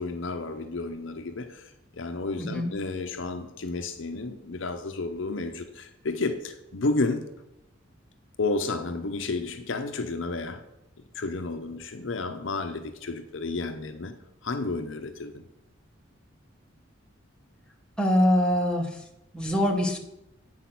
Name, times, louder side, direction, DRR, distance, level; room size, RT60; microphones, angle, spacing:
voice 1, 0.0-1.6 1.9-7.2 8.4-10.6 11.1-14.1 14.4-15.4, left 3 dB, 70° left, 0.7 m, -31 dB
voice 2, 2.4-2.7 18.0-18.9 19.3-20.0, equal, 5° left, 1.1 m, -23 dB
8.5 x 4.9 x 6.0 m
head